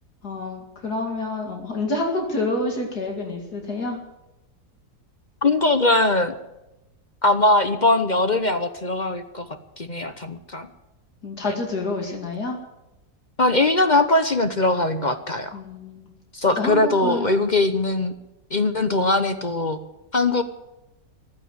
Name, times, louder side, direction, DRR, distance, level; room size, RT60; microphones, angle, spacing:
voice 1, 0.2-4.0 11.2-12.6 15.5-16.1 16.6-17.3, left 2 dB, 70° left, 2 dB, 2.8 m, -28 dB
voice 2, 5.4-6.3 7.2-9.5 9.8-10.7 13.4-15.6 16.3-18.1 18.5-19.8 20.1-20.4, left 2 dB, 35° left, 9 dB, 0.8 m, -21 dB
15.5 x 11.5 x 8.0 m, 0.95 s
omnidirectional pair, 1.8 m